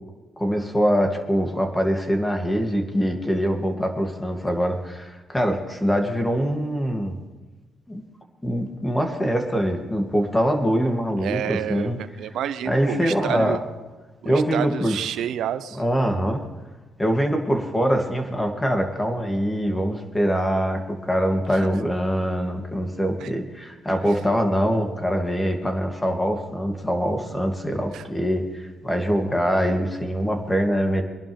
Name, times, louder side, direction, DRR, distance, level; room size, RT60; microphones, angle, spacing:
voice 1, 0.4-7.1 7.9-8.0 8.4-12.0 12.6-13.6 14.2-15.0 15.8-16.4 17.0-31.0, equal, 10° left, 3 dB, 2.6 m, -23 dB
voice 2, 11.2-13.6 14.2-15.8 21.5-21.6 23.2-23.3 27.9-28.0, right 10 dB, 80° right, 12 dB, 1.0 m, -29 dB
23.5 x 11.5 x 3.5 m, 1.2 s
cardioid pair, 90°, 0 cm